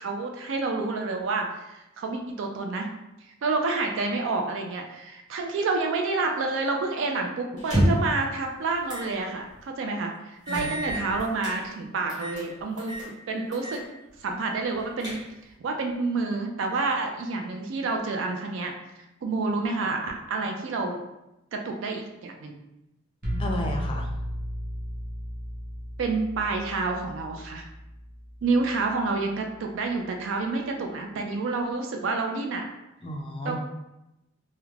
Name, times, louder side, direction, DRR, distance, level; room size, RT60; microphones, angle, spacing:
voice 1, 0.0-2.9 3.2-12.9 13.3-13.8 14.2-15.2 15.6-18.7 19.2-21.0 21.5-22.6 26.0-27.6 28.4-32.7 33.4-33.6, right 3 dB, 65° right, 3 dB, 0.3 m, -29 dB
sound 1, 7.6-8.2 8.9-9.1 9.5-9.6 10.5-11.6 12.1-12.4 12.8-13.1 13.5-13.8 14.1-14.2 14.7-15.5, equal, 20° right, 1.0 m, -28 dB
sound 2, 23.2-29.0, equal, 45° right, 0.7 m, -35 dB
voice 2, 23.4-24.1 33.0-33.6, equal, 25° left, 2 dB, 0.3 m, -32 dB
2.4 x 2.1 x 3.1 m, 0.92 s
head